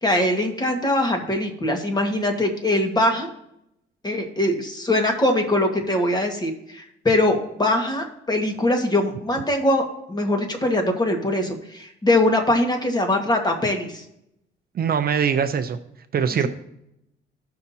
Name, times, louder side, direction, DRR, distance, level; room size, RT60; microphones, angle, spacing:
voice 1, 0.0-3.3 4.0-14.0, left 1 dB, 20° left, 3 dB, 1.6 m, -22 dB
voice 2, 14.7-15.8 16.1-16.5, right 7 dB, 50° right, 9 dB, 0.6 m, -22 dB
15.0 x 5.9 x 2.8 m, 0.81 s
cardioid pair, 90°, 20 cm